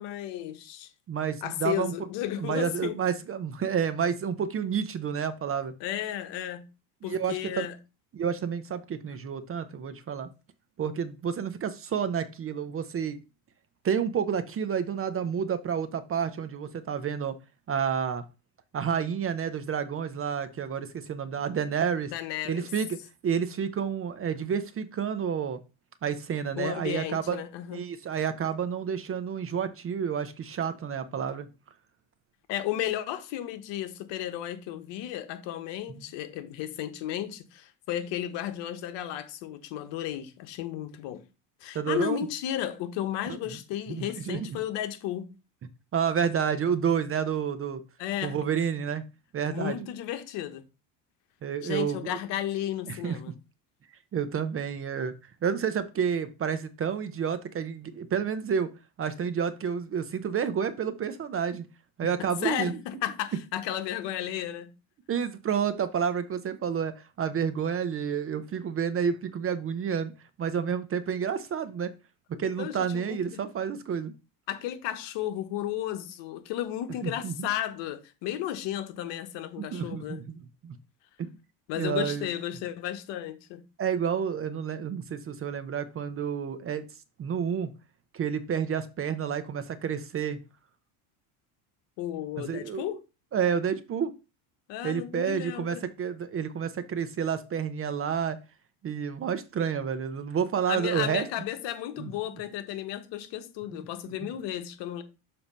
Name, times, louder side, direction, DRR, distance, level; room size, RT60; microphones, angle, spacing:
voice 1, 0.0-0.9 1.4-3.0 5.8-6.7 7.0-7.8 22.1-22.7 26.6-27.8 32.5-41.2 41.6-45.3 48.0-48.4 49.5-50.6 51.6-53.3 62.2-64.7 72.3-73.4 74.5-80.2 81.7-83.6 92.0-93.0 94.7-95.8 100.7-105.0, left 12 dB, 65° left, 1.2 m, -34 dB
voice 2, 1.1-1.9 2.4-5.7 7.0-7.7 8.1-10.3 10.8-13.2 13.8-17.4 17.7-18.2 18.7-22.1 22.4-25.6 26.0-27.4 27.7-31.5 41.7-42.2 43.9-44.6 45.9-47.8 48.2-49.0 49.3-49.9 51.4-52.2 52.9-53.2 54.1-55.1 55.4-58.7 59.0-61.6 62.0-62.8 65.1-70.1 70.4-71.9 72.3-74.1 77.0-77.5 79.6-80.8 81.2-81.3 81.7-82.3 83.8-86.9 87.2-87.7 88.1-90.4 92.5-93.0 93.3-94.1 94.8-98.4 98.8-101.3 102.0-102.1 103.7-103.9, right 7 dB, 30° right, 0.6 m, -30 dB
7.0 x 2.9 x 5.3 m
supercardioid pair, 120°, 47 cm